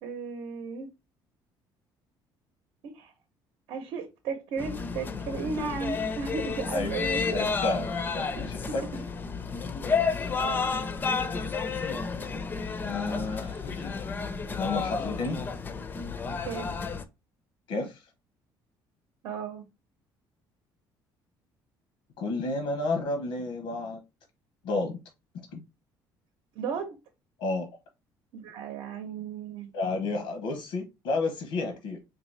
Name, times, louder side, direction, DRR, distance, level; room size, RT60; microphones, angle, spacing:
voice 1, 0.0-0.9 2.8-3.1 3.7-7.4 8.4-8.9 10.0-10.8 16.4-16.7 19.2-19.6 26.5-27.0 28.3-29.7, right 5 dB, 80° right, 0.8 m, -35 dB
sound 1, 4.6-17.0, left 5 dB, 20° left, 0.4 m, -31 dB
voice 2, 7.3-8.8 12.8-14.2 14.5-15.4 17.7-18.0 22.2-24.0 24.6-25.0 25.5-25.6 27.4-27.7 29.7-32.0, left 3 dB, 85° left, 0.9 m, -31 dB
3.9 x 2.7 x 3.2 m
cardioid pair, 155°, 9 cm